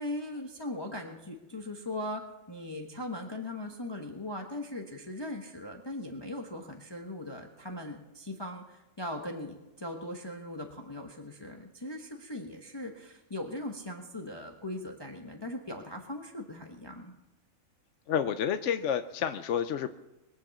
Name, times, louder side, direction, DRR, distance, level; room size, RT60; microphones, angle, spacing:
voice 1, 0.0-2.2 2.5-17.1, left 1 dB, 20° left, 2 dB, 1.1 m, -39 dB
voice 2, 18.1-19.9, left 8 dB, 65° left, 9 dB, 0.9 m, -29 dB
22.0 x 7.8 x 7.1 m, 1.1 s
omnidirectional pair, 1.4 m